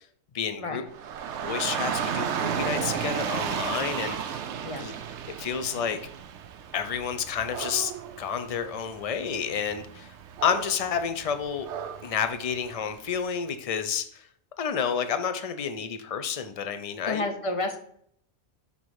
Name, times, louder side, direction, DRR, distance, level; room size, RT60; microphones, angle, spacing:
voice 1, 0.3-0.8 1.4-4.5 4.8-4.9 5.3-6.0 6.7-7.9 8.2-10.1 10.4-11.7 12.0-14.3 14.6-17.2, left 7 dB, 65° left, 9 dB, 0.3 m, -30 dB
Dog / Rain, 0.9-13.1, right 8 dB, 70° right, 0.8 m, -34 dB
voice 2, 17.0-17.8, left 2 dB, 35° left, 5 dB, 0.6 m, -30 dB
6.0 x 3.6 x 4.7 m, 0.65 s
omnidirectional pair, 1.3 m